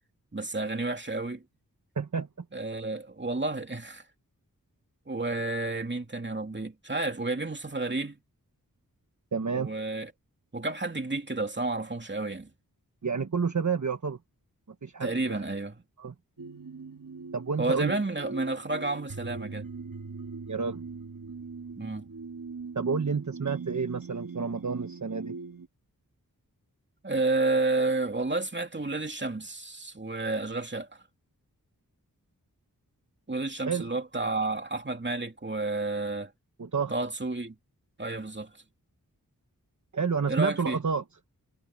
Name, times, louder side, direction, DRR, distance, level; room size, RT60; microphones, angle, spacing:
voice 1, 0.3-1.4 2.5-4.0 5.1-8.2 9.5-10.1 10.5-12.5 15.0-15.8 17.6-19.6 21.8-22.1 27.0-31.0 33.3-36.3 36.9-37.6 38.0-38.5 40.3-40.8, right 2 dB, 30° right, 2.7 m, -31 dB
voice 2, 2.0-2.4 9.3-9.7 13.0-14.2 14.8-15.4 16.0-16.1 17.3-18.0 20.5-20.8 22.7-25.4 33.7-33.9 36.6-36.9 39.9-41.0, right 5 dB, 55° right, 1.3 m, -30 dB
sound 1, 16.4-25.7, right 4 dB, 70° right, 2.5 m, -41 dB
wide cardioid pair, 80°, 35 cm